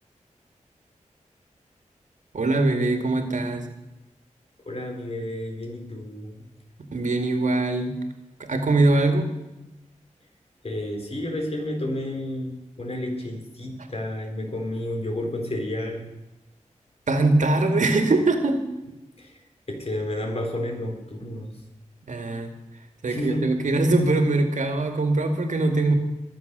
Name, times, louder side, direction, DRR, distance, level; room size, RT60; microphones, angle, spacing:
voice 1, 2.3-3.7 6.9-8.0 8.4-9.3 17.1-18.6 22.1-22.5 23.0-25.9, right 2 dB, 70° right, 6 dB, 2.1 m, -22 dB
voice 2, 4.7-6.4 10.6-16.1 19.2-19.3 19.7-21.5 23.1-23.5, left 1 dB, 50° left, 2 dB, 3.9 m, -31 dB
22.0 x 7.7 x 6.7 m, 0.97 s
wide cardioid pair, 80°, 13 cm